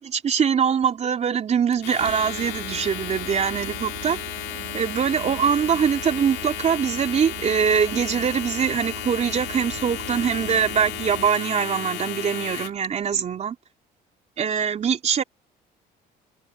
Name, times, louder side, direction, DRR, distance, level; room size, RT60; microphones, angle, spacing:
voice 1, 0.0-4.2 4.7-13.6 14.4-15.2, right 7 dB, 40° right, 3.2 m, -23 dB
Domestic sounds home sounds, 1.7-12.9, left 15 dB, 80° left, 2.6 m, -34 dB
sound 1, 2.0-11.3, right 16 dB, 90° right, 3.4 m, -40 dB
cardioid pair, 110°, 17 cm